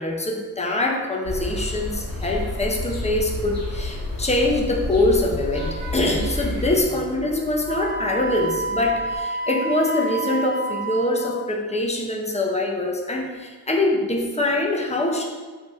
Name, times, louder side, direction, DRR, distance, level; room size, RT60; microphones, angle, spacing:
voice 1, 0.0-15.2, left 2 dB, 20° left, 0 dB, 0.5 m, -24 dB
sound 1, 1.2-6.8, left 1 dB, 40° left, 1.0 m, -29 dB
Vehicle horn car horn honking / Traffic noise roadway noise, 3.8-9.2, left 2 dB, 65° right, 0.8 m, -40 dB
Wind instrument woodwind instrument, 7.7-11.2, right 2 dB, 25° right, 0.9 m, -29 dB
3.0 x 2.6 x 3.6 m, 1.4 s
wide cardioid pair, 80°, 38 cm